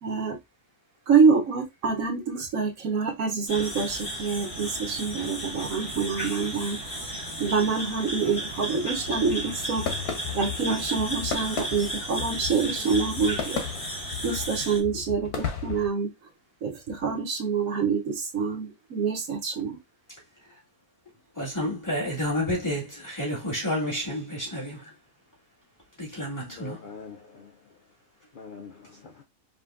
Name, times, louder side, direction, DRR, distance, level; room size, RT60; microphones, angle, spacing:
voice 1, 0.0-0.4 1.1-6.8 7.4-9.8 10.3-13.6 14.2-16.1 16.6-19.8, right 5 dB, 70° right, 1.2 m, -26 dB
sound 1, 3.5-14.8, right 1 dB, 40° left, 1.8 m, -34 dB
sound 2, 9.0-15.9, left 8 dB, 90° left, 1.3 m, -35 dB
voice 2, 21.4-24.8 26.0-26.8, equal, 15° left, 1.7 m, -30 dB
voice 3, 26.4-27.5 28.3-29.2, left 4 dB, 70° left, 0.4 m, -44 dB
5.1 x 2.7 x 2.4 m
omnidirectional pair, 1.5 m